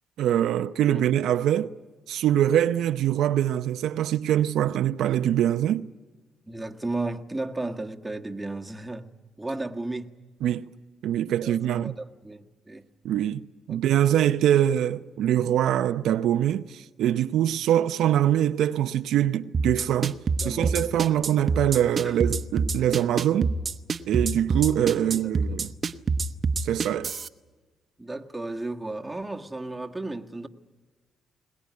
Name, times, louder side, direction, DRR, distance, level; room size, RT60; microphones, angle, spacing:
voice 1, 0.2-1.7 2.1-5.9 10.4-10.6 11.0-11.9 13.0-23.6 24.1-25.7 26.6-27.1, right 11 dB, 80° right, 0.7 m, -24 dB
voice 2, 6.5-9.1 9.4-10.1 11.4-12.9 13.7-14.0 20.4-20.9 22.0-22.2 25.0-25.8 28.0-30.5, right 2 dB, 10° right, 1.6 m, -34 dB
sound 1, 19.5-27.3, right 4 dB, 45° right, 1.0 m, -25 dB
21.5 x 20.5 x 9.7 m
cardioid pair, 90°, 0 cm